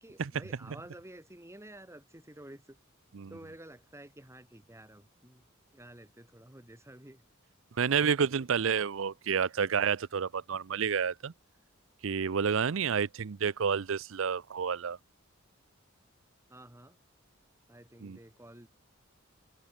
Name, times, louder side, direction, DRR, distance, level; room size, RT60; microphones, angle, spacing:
voice 1, 0.0-2.8 3.3-5.4 5.7-7.2 8.4-8.8 12.6-12.8 16.5-17.0 17.7-18.7, right 1 dB, 15° right, 2.7 m, -51 dB
voice 2, 7.8-11.3 12.0-15.0 18.0-18.2, right 6 dB, 70° right, 0.6 m, -29 dB
head